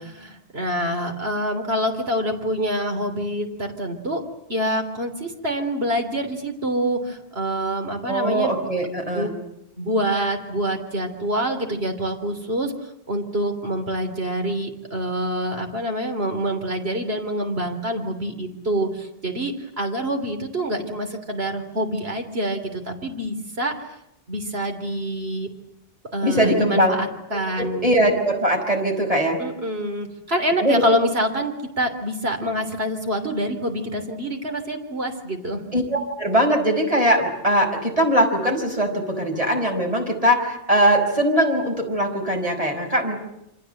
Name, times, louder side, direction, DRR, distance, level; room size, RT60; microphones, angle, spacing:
voice 1, 0.0-4.2 4.5-8.5 9.1-9.3 9.8-12.7 13.1-23.7 24.3-25.5 26.1-27.9 29.4-35.6, right 1 dB, 70° right, 5 dB, 3.5 m, -26 dB
voice 2, 8.1-9.3 26.2-26.9 27.3-29.4 30.6-30.8 35.7-43.2, equal, 35° right, 3 dB, 5.2 m, -21 dB
27.5 x 25.5 x 7.9 m, 0.82 s
omnidirectional pair, 1.1 m